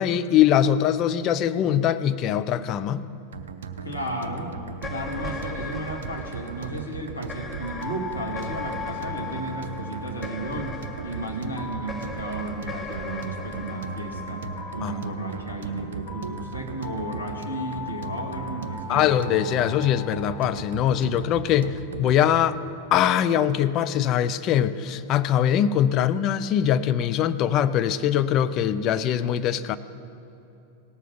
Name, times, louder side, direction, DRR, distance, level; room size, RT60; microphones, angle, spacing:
voice 1, 0.0-3.0 14.8-14.9 18.9-22.6 22.9-29.8, left 10 dB, 35° left, 12 dB, 0.4 m, -22 dB
sound 1, 3.3-22.5, right 5 dB, 60° right, 0.6 m, -38 dB
voice 2, 3.8-4.5 4.9-14.5 14.7-19.1, right 1 dB, 85° left, 0 dB, 1.5 m, -33 dB
sound 2, 4.7-15.2, left 3 dB, 15° left, 0.8 m, -40 dB
sound 3, 7.6-21.5, left 4 dB, 55° left, 2.3 m, -40 dB
17.5 x 7.0 x 6.0 m, 2.8 s
figure-of-eight pair, 90°, 0 cm